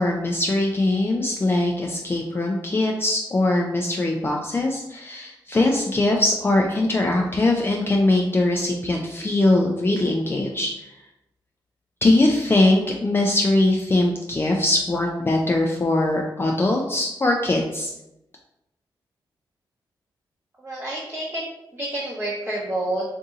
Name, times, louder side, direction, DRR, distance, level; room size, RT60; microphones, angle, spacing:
voice 1, 0.0-10.9 12.0-17.9, left 2 dB, 25° left, 0 dB, 0.4 m, -21 dB
voice 2, 20.6-21.4 21.7-23.0, right 1 dB, 20° right, -5 dB, 0.8 m, -28 dB
2.6 x 2.6 x 3.7 m, 0.90 s
cardioid pair, 60°, 9 cm